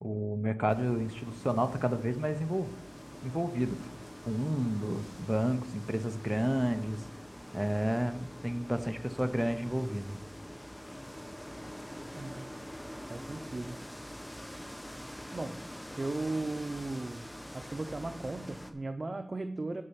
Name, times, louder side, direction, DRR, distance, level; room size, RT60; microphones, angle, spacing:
voice 1, 0.0-2.7 3.2-3.8 4.3-7.0 7.5-10.2, equal, 10° right, 9 dB, 0.8 m, -31 dB
sound 1, 0.7-18.7, equal, 10° left, 1.3 m, -45 dB
voice 2, 12.1-12.7 13.1-13.8 15.3-19.8, right 2 dB, 85° right, 6 dB, 0.6 m, -37 dB
10.0 x 5.4 x 7.1 m, 0.73 s
wide cardioid pair, 45°, 0 cm